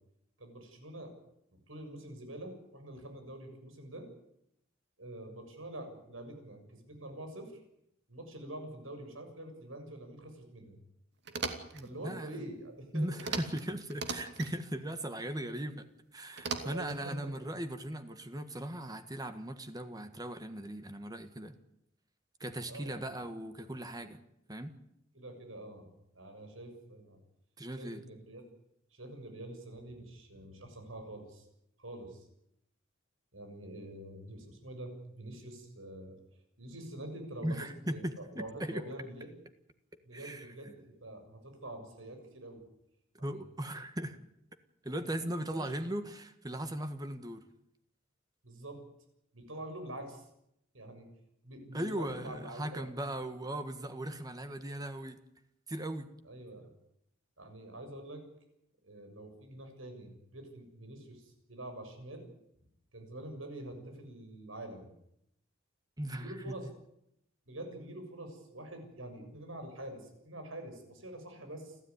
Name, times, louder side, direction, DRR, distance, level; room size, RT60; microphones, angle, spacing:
voice 1, 0.4-1.1 1.5-4.1 5.0-7.6 8.1-10.8 11.8-13.3 16.6-17.3 22.7-23.1 25.1-27.2 27.8-28.4 28.9-31.5 31.8-32.3 33.3-36.2 36.6-39.3 40.0-42.6 43.2-43.5 45.2-45.7 48.4-48.8 49.3-50.3 50.7-51.0 51.4-52.8 56.3-56.7 57.4-58.2 58.8-62.3 62.9-64.9 66.1-66.7 67.5-71.8, right 1 dB, 90° right, 5 dB, 7.0 m, -46 dB
sound 1, 11.3-11.8 13.2-13.6 13.9-14.5 16.4-17.0, right 4 dB, 60° right, 2.6 m, -37 dB
voice 2, 11.7-12.5 12.9-15.9 16.1-21.5 22.4-24.2 24.5-24.7 27.6-28.0 37.4-38.8 40.1-40.7 43.2-44.2 44.8-47.4 51.7-55.2 55.7-56.1 66.0-66.5, right 1 dB, 20° right, 9 dB, 1.5 m, -38 dB
29.5 x 13.5 x 9.7 m, 0.78 s
head